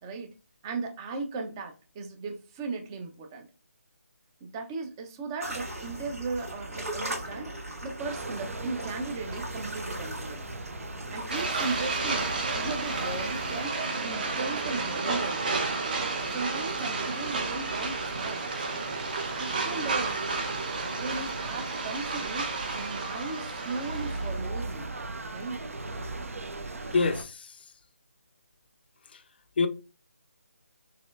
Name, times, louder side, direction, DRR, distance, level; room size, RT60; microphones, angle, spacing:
voice 1, 0.6-3.5 4.4-10.4 11.1-13.7 14.0-15.6 16.3-18.5 19.3-20.2 21.0-24.9 25.3-25.7, right 3 dB, 15° right, 0.4 m, -37 dB
sound 1, 5.4-13.6, right 1 dB, 85° right, 1.7 m, -39 dB
sound 2, 8.0-27.2, right 2 dB, 70° right, 0.6 m, -40 dB
sound 3, 11.3-24.4, right 3 dB, 35° right, 0.8 m, -32 dB
voice 2, 26.9-27.7 29.1-29.2 29.6-29.7, left 4 dB, 40° left, 0.4 m, -27 dB
4.1 x 3.1 x 2.4 m
figure-of-eight pair, 160°, 8 cm